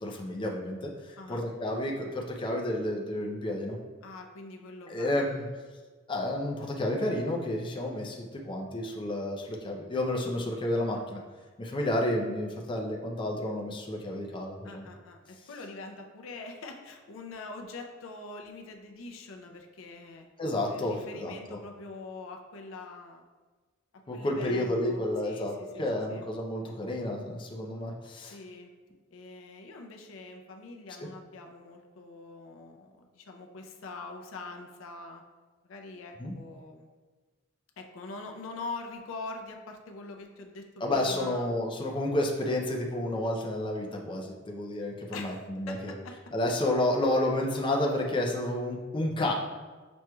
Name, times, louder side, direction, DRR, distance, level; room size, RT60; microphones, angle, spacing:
voice 1, 0.0-3.8 4.9-5.3 6.1-11.2 11.6-14.9 20.4-21.6 24.1-25.5 25.8-28.4 31.0-31.1 36.2-36.3 40.8-45.9 46.3-49.3, left 1 dB, 25° left, 0 dB, 0.5 m, -30 dB
voice 2, 4.0-5.4 14.6-20.3 20.7-23.2 23.9-26.3 28.2-28.7 29.1-35.2 35.6-36.9 37.8-41.5 45.1-46.2, left 3 dB, 80° left, 4 dB, 0.5 m, -44 dB
6.1 x 2.9 x 2.2 m, 1.3 s
head